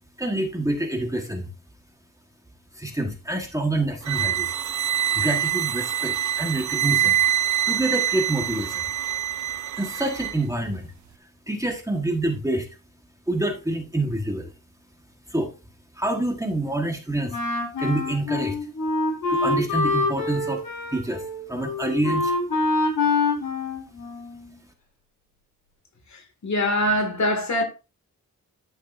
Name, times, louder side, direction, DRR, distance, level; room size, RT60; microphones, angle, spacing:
voice 1, 0.2-1.5 2.7-4.5 5.1-7.2 7.7-8.8 9.8-10.9 11.5-12.7 13.3-14.5 15.3-15.5 15.9-17.4 17.8-18.6 19.3-20.6 20.9-22.3, right 1 dB, 10° right, 1.5 m, -27 dB
sound 1, 4.0-10.4, right 11 dB, 60° right, 0.5 m, -25 dB
Wind instrument woodwind instrument, 17.3-24.5, left 3 dB, 75° left, 5.2 m, -25 dB
voice 2, 26.1-27.6, left 1 dB, 55° left, 2.3 m, -24 dB
12.0 x 6.5 x 2.6 m
wide cardioid pair, 110°, 34 cm